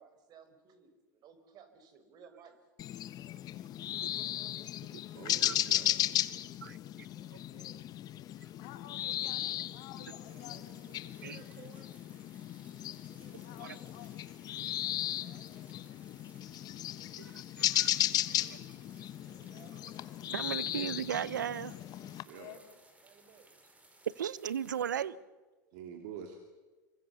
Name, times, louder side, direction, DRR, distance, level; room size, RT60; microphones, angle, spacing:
voice 1, 0.0-2.6 7.1-7.8 10.3-11.9 13.1-13.9 15.1-15.5 19.0-19.8 21.3-21.6 23.0-23.5 24.8-25.2 25.7-25.8, right 6 dB, 45° right, 10 dB, 4.9 m, -59 dB
sound 1, 2.8-22.2, left 13 dB, 40° left, 1.2 m, -36 dB
voice 2, 5.1-5.9 20.2-21.1 22.1-22.6 25.7-26.4, right 7 dB, 60° right, 5 dB, 2.9 m, -48 dB
voice 3, 8.6-10.8 13.4-14.3 22.3-22.8, left 12 dB, 55° left, 6 dB, 4.1 m, -52 dB
sound 2, 10.2-25.0, right 2 dB, 15° right, 4.9 m, -62 dB
voice 4, 17.6-18.5 20.3-21.7 24.2-25.2, right 9 dB, 85° right, 21 dB, 0.8 m, -36 dB
27.0 x 23.5 x 6.9 m, 1.3 s
hypercardioid pair, 90°, 10 cm